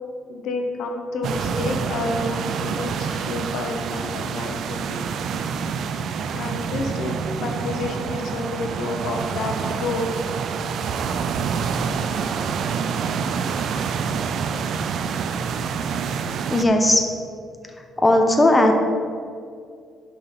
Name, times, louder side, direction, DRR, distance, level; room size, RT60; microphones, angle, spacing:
voice 1, 0.3-5.1 6.3-10.1, left 3 dB, 80° left, 3 dB, 1.0 m, -30 dB
sound 1, 1.2-16.7, right 6 dB, 70° right, 0.5 m, -27 dB
voice 2, 16.3-17.1 18.0-18.7, left 1 dB, 20° left, 3 dB, 1.1 m, -17 dB
10.5 x 5.6 x 4.1 m, 2.3 s
cardioid pair, 90°, 0 cm